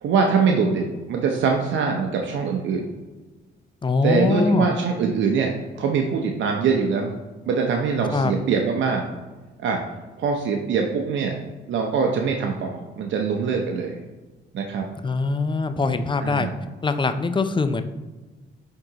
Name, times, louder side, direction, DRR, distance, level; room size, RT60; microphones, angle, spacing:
voice 1, 0.0-2.9 4.0-7.1 7.4-9.1 9.6-9.8 10.2-11.3 11.7-14.0 14.5-14.8 16.2-16.5, right 5 dB, 70° right, 2 dB, 0.7 m, -23 dB
voice 2, 3.8-4.7 8.1-8.3 15.0-16.5 16.8-17.8, left 3 dB, 25° left, 9 dB, 0.5 m, -22 dB
9.0 x 3.8 x 2.9 m, 1.2 s
cardioid pair, 90°, 20 cm